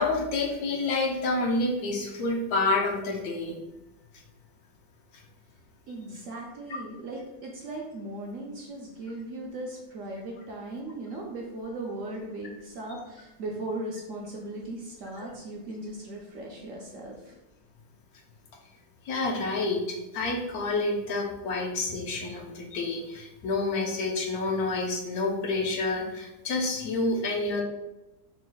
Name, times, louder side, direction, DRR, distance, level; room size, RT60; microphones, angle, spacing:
voice 1, 0.0-3.6 6.7-6.8 15.2-15.3 19.0-27.6, left 3 dB, 70° left, 1 dB, 1.1 m, -28 dB
voice 2, 5.9-17.3, right 2 dB, 65° right, -1 dB, 0.8 m, -38 dB
4.0 x 2.1 x 3.7 m, 0.98 s
omnidirectional pair, 1.7 m